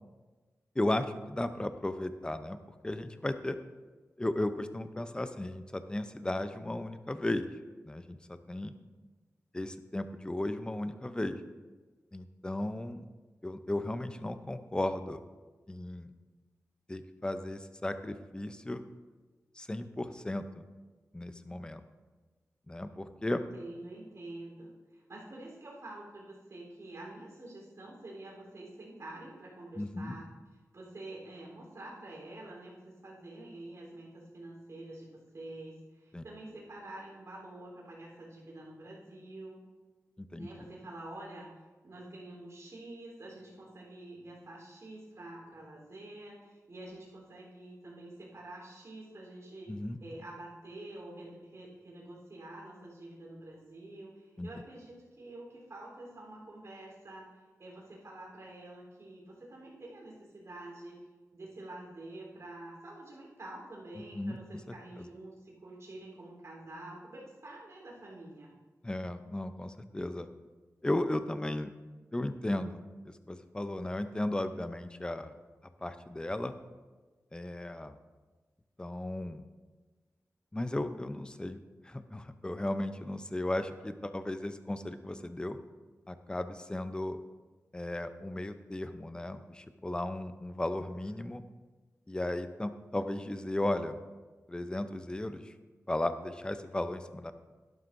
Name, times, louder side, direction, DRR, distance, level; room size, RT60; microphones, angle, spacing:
voice 1, 0.8-2.6 2.8-3.6 4.2-7.5 7.8-8.7 9.5-11.4 12.1-13.1 13.4-15.2 15.7-16.1 16.9-18.8 19.6-20.6 21.1-21.8 22.7-23.4 29.8-30.2 36.1-36.2 40.2-40.5 49.7-50.0 54.4-54.5 64.0-64.4 64.7-64.8 68.8-70.3 70.8-71.7 72.1-75.3 75.8-76.5 77.3-78.0 78.8-79.4 80.5-81.6 81.8-85.6 86.1-87.2 87.7-91.4 92.1-94.0 94.5-95.5 95.9-97.3, left 1 dB, 15° left, 10 dB, 0.6 m, -35 dB
voice 2, 23.2-30.3 30.7-39.6 40.4-41.5 41.8-49.7 50.0-57.3 57.6-61.0 61.3-68.6, right 1 dB, 60° right, -4 dB, 3.7 m, -47 dB
12.0 x 11.5 x 2.6 m, 1.3 s
wide cardioid pair, 105°, 6 cm